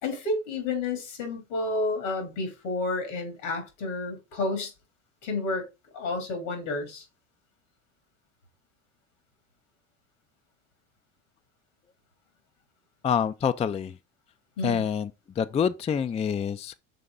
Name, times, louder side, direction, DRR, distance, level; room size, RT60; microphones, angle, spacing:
voice 1, 0.0-4.7 5.2-5.6 5.9-7.0 14.6-14.8, left 2 dB, 75° left, 2.9 m, -30 dB
voice 2, 13.0-14.0 14.6-15.1 15.4-16.8, left 7 dB, 20° left, 0.4 m, -26 dB
6.8 x 3.8 x 3.7 m
hypercardioid pair, 75°, 36 cm